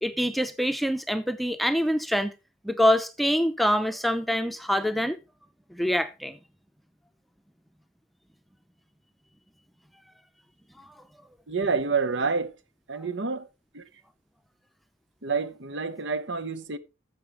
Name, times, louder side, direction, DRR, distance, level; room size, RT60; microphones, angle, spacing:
voice 1, 0.0-2.3 2.6-5.2 5.7-6.4, equal, ahead, 0.6 m, -25 dB
voice 2, 11.5-12.5 12.9-13.5 13.7-13.8 15.2-16.8, right 4 dB, 75° right, 0.9 m, -28 dB
13.0 x 7.0 x 3.5 m
head